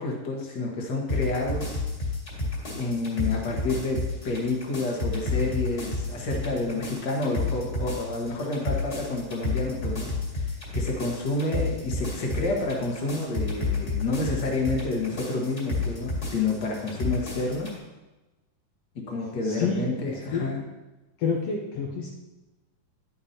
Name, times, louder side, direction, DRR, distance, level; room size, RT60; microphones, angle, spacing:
voice 1, 0.0-1.8 2.7-10.1 10.4-17.7 18.9-20.6, left 2 dB, 45° left, 0 dB, 1.4 m, -29 dB
sound 1, 1.1-17.7, left 3 dB, 25° left, 1.7 m, -31 dB
voice 2, 19.4-19.8 20.1-20.5 21.2-22.1, left 5 dB, 80° left, -2 dB, 1.3 m, -28 dB
10.5 x 8.8 x 2.9 m, 1.1 s
omnidirectional pair, 3.9 m